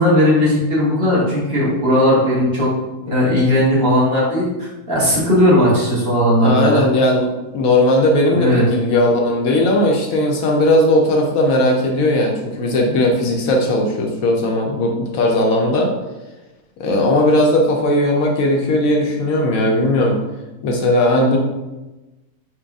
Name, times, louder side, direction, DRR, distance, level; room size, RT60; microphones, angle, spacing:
voice 1, 0.0-2.7 3.1-6.8 8.3-8.6, left 1 dB, 45° right, -6 dB, 1.2 m, -16 dB
voice 2, 6.4-15.9 16.8-20.2 20.6-21.4, left 1 dB, 70° left, 1 dB, 0.9 m, -17 dB
4.6 x 2.2 x 3.4 m, 1.1 s
omnidirectional pair, 1.6 m